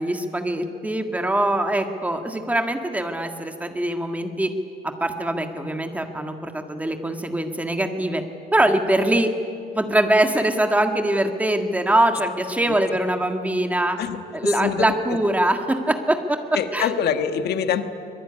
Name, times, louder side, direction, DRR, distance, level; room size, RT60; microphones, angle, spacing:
voice 1, 0.0-4.5 4.8-8.2 8.5-9.3 9.7-14.0 14.3-16.4 16.7-16.9, right 1 dB, 10° right, 5 dB, 1.8 m, -23 dB
voice 2, 14.6-14.9 16.5-17.9, left 8 dB, 75° left, 8 dB, 1.5 m, -24 dB
24.0 x 21.5 x 9.8 m, 2.6 s
cardioid pair, 160°, 17 cm